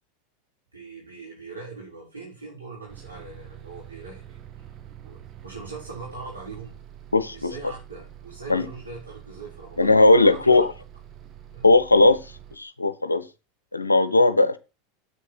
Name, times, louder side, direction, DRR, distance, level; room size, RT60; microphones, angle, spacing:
voice 1, 0.7-4.4 5.0-6.7 7.3-9.9 10.2-10.7 11.5-11.7, right 3 dB, 90° right, 4.7 m, -40 dB
Bus, 2.9-12.6, right 10 dB, 40° right, 1.2 m, -45 dB
voice 2, 7.1-7.5 8.5-8.7 9.8-10.7 11.6-12.2 12.6-13.2 13.7-14.6, left 2 dB, 90° left, 0.7 m, -18 dB
8.2 x 6.6 x 6.2 m
figure-of-eight pair, 80°, 0 cm